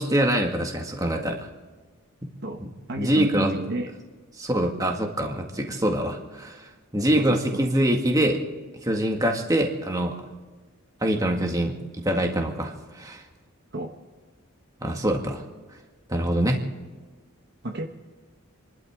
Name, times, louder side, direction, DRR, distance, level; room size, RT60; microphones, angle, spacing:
voice 1, 0.0-1.4 3.0-3.5 4.4-6.7 6.9-8.4 8.8-10.2 11.0-11.8 12.0-13.2 14.8-15.4 16.1-16.6, right 1 dB, 15° right, 2 dB, 1.9 m, -24 dB
voice 2, 2.9-3.9 7.2-7.6 13.7-13.9 17.6-17.9, right 2 dB, 50° right, 3 dB, 1.2 m, -31 dB
29.0 x 12.0 x 3.7 m, 1.4 s
head